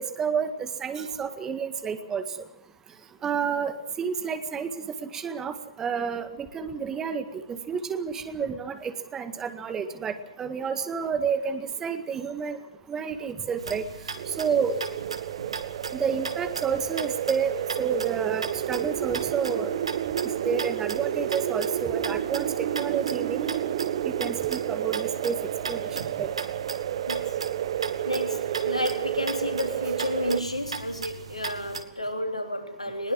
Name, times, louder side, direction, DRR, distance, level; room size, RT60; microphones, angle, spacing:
voice 1, 0.0-2.2 3.2-4.7 5.0-12.6 12.9-13.9 14.4-14.8 15.9-19.8 20.4-23.6 24.1-25.4 25.7-25.8 26.2-26.3, right 6 dB, 15° right, 10 dB, 1.9 m, -30 dB
sound 1, 13.6-31.8, right 5 dB, 70° right, 2.4 m, -38 dB
sound 2, 14.1-30.4, right 11 dB, 45° right, 1.2 m, -30 dB
voice 2, 27.1-27.4 28.1-33.1, left 1 dB, 90° left, 5 dB, 3.7 m, -31 dB
21.0 x 20.0 x 7.5 m, 0.72 s
figure-of-eight pair, 125°, 3 cm